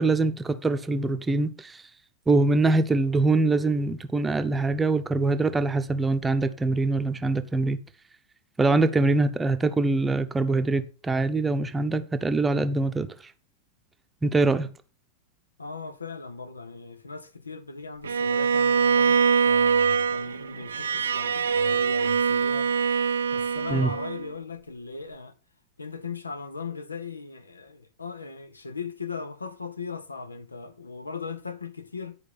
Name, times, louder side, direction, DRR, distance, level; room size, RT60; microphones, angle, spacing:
voice 1, 0.0-1.8 2.3-7.8 8.6-13.1 14.2-14.7 23.7-23.9, right 3 dB, 10° right, 0.8 m, -23 dB
voice 2, 15.6-22.7 23.3-25.3 25.8-32.2, left 5 dB, 80° left, 0.8 m, -38 dB
Bowed string instrument, 18.0-24.3, right 6 dB, 70° right, 0.4 m, -23 dB
11.0 x 5.0 x 5.7 m
figure-of-eight pair, 90°, 0 cm